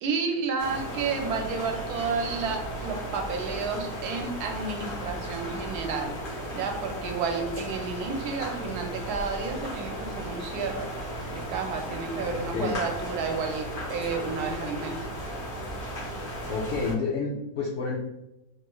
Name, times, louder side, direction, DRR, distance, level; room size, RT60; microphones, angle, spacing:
voice 1, 0.0-6.2 6.5-10.9 11.3-15.0, right 4 dB, 75° right, 3 dB, 1.1 m, -31 dB
sound 1, 0.6-16.9, right 1 dB, 50° left, 1.1 m, -35 dB
voice 2, 12.3-12.8 16.5-18.0, left 4 dB, 85° left, -3 dB, 0.6 m, -30 dB
3.3 x 3.0 x 2.2 m, 0.90 s
omnidirectional pair, 1.8 m